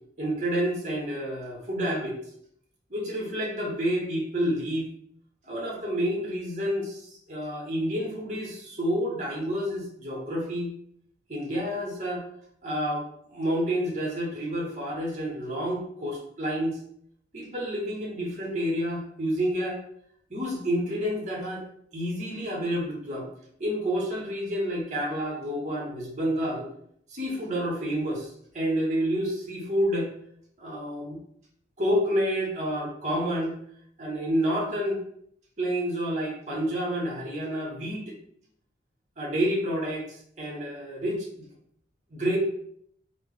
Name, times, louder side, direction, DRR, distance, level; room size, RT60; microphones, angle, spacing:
voice 1, 0.2-2.2 2.9-4.9 5.4-10.7 11.3-12.2 12.6-16.8 17.3-19.8 20.3-21.6 21.9-23.3 23.6-26.7 27.1-30.1 30.6-31.2 31.8-33.6 34.0-35.0 35.6-38.2 39.2-41.5 42.1-42.4, equal, 40° right, -2 dB, 0.8 m, -29 dB
3.3 x 2.0 x 3.7 m, 0.68 s
head